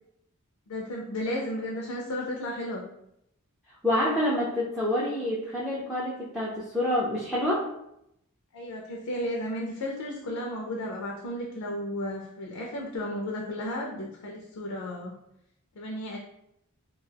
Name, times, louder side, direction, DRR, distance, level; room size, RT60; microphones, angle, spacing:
voice 1, 0.7-2.9 8.5-15.1 15.8-16.2, left 1 dB, 70° left, -1 dB, 0.4 m, -33 dB
voice 2, 3.8-7.7, left 1 dB, ahead, -7 dB, 0.4 m, -27 dB
2.3 x 2.2 x 3.2 m, 0.79 s
head